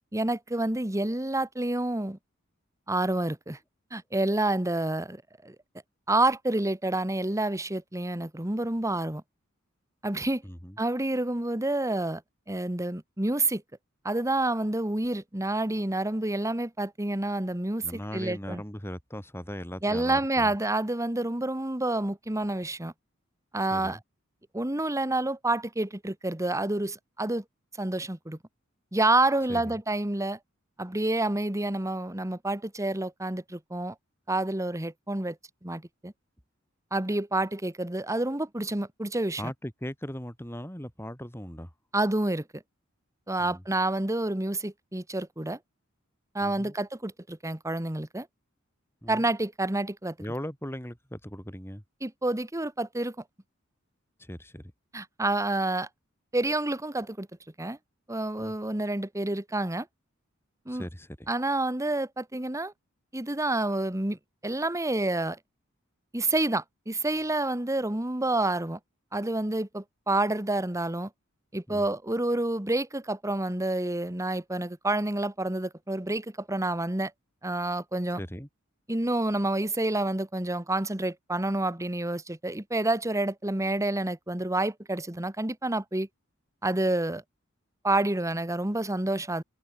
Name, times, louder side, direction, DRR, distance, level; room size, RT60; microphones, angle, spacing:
voice 1, 0.0-2.2 2.9-3.6 3.9-5.5 6.1-9.2 10.0-10.4 10.8-12.2 12.5-13.6 14.0-18.6 19.8-22.9 23.5-24.0 24.5-27.4 27.8-28.4 28.9-30.4 30.8-33.9 34.3-35.4 35.6-36.1 36.9-39.5 41.9-42.6 43.3-45.6 46.3-48.3 49.1-50.1 52.0-53.1 54.9-55.9 56.3-57.3 57.6-57.8 58.1-59.9 60.6-60.8 61.3-62.7 63.1-64.2 64.4-65.4 66.1-68.8 69.1-71.1 71.5-77.1 77.4-78.2 78.9-86.1 86.6-87.2 87.8-89.4, right 2 dB, 15° right, 1.5 m, -28 dB
voice 2, 10.4-10.8 17.8-20.5 23.7-24.0 29.5-29.7 39.4-41.7 43.4-43.6 46.4-46.7 49.0-49.3 50.2-51.8 54.2-54.7 58.4-58.5 60.7-61.3 71.7-71.8 78.1-78.5, equal, 10° left, 4.8 m, -39 dB
open air
head